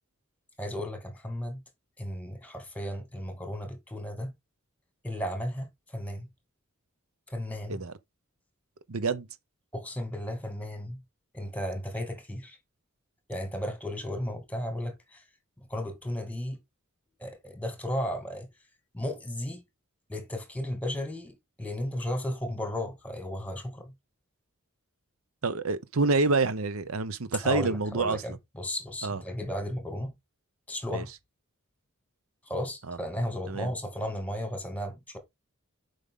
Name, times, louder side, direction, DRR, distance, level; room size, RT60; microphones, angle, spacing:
voice 1, 0.6-1.6 2.0-4.3 5.0-6.3 7.3-7.8 9.7-11.0 11.3-12.6 13.3-15.2 15.6-16.6 17.2-18.5 18.9-19.6 20.1-23.9 27.4-30.2 30.7-31.1 32.5-35.2, equal, 5° left, 2.1 m, -34 dB
voice 2, 8.9-9.3 25.4-28.2 29.0-29.2 30.9-31.0 32.9-33.0 33.5-33.7, right 3 dB, 90° right, 0.8 m, -27 dB
7.4 x 5.3 x 3.7 m
head